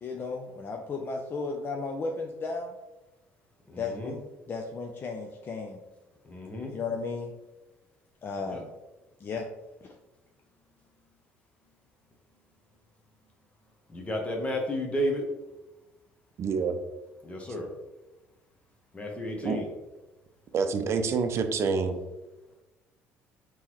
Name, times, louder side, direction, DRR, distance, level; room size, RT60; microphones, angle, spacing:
voice 1, 0.0-2.7 3.8-4.2 4.5-5.8 6.7-7.3 8.2-8.7 9.2-9.5 9.8-9.9, left 4 dB, 40° left, 2 dB, 0.4 m, -34 dB
voice 2, 3.7-4.1 6.3-6.7 8.5-8.6 13.9-15.2 17.2-17.7 18.9-19.7, equal, 20° left, 1 dB, 0.8 m, -32 dB
voice 3, 16.4-16.8 19.4-19.6 20.5-22.0, right 5 dB, 50° right, 7 dB, 0.5 m, -27 dB
3.6 x 3.0 x 3.0 m, 1.1 s
supercardioid pair, 70°, 6 cm